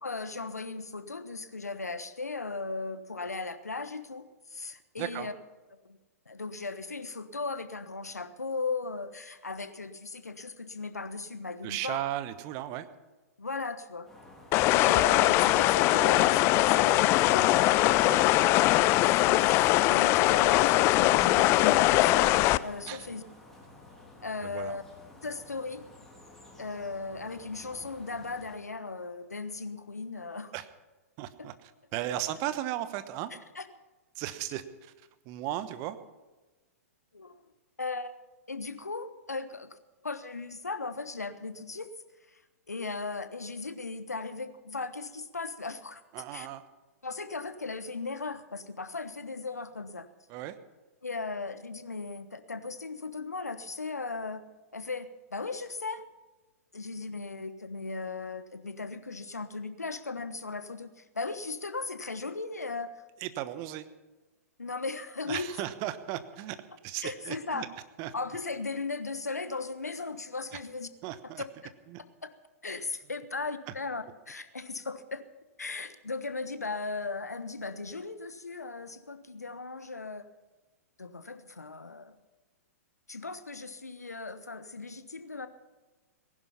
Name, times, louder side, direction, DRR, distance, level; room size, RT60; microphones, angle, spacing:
voice 1, 0.0-5.3 5.8-6.0 6.3-12.0 13.4-14.1 14.7-17.5 18.3-18.4 19.0-22.3 22.6-23.2 24.2-24.8 25.2-25.8 26.6-30.5 31.4-31.5 33.5-33.7 37.1-37.4 37.8-38.1 38.5-39.8 40.0-41.9 42.3-42.4 42.7-46.0 46.3-46.5 47.0-50.1 51.0-54.4 54.7-56.0 56.7-62.9 64.6-65.5 67.0-67.7 68.1-70.9 72.6-75.2 75.6-80.3 81.0-82.2 83.1-85.5, left 3 dB, 85° left, 11 dB, 1.2 m, -37 dB
voice 2, 5.0-5.3 11.6-12.9 17.6-18.2 22.9-23.1 24.4-24.8 30.5-30.7 31.2-33.3 34.1-36.0 46.1-46.6 50.3-50.5 63.2-63.9 65.3-66.6 66.8-67.7 68.0-68.1 70.5-70.6 71.0-71.4 71.9-72.0, right 13 dB, 35° right, 12 dB, 1.1 m, -36 dB
sound 1, 14.0-28.6, left 2 dB, 5° left, 3.6 m, -52 dB
sound 2, 14.5-22.6, left 17 dB, 30° left, 0.4 m, -22 dB
19.0 x 11.0 x 5.7 m, 1.2 s
figure-of-eight pair, 110°, 8 cm